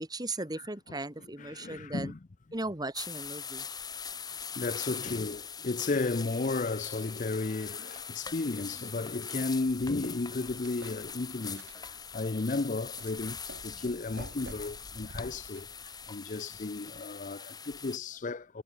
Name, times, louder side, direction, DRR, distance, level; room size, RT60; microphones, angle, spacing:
voice 1, 0.0-2.1 2.5-3.7, right 2 dB, 20° right, 2.6 m, -37 dB
voice 2, 0.6-2.2 4.6-11.7 12.1-13.4 13.6-15.7 16.1-18.6, left 3 dB, 40° left, 0.6 m, -34 dB
sound 1, 2.9-18.0, left 7 dB, 20° left, 1.3 m, -42 dB
sound 2, 9.6-16.1, right 1 dB, 55° right, 6.1 m, -50 dB
head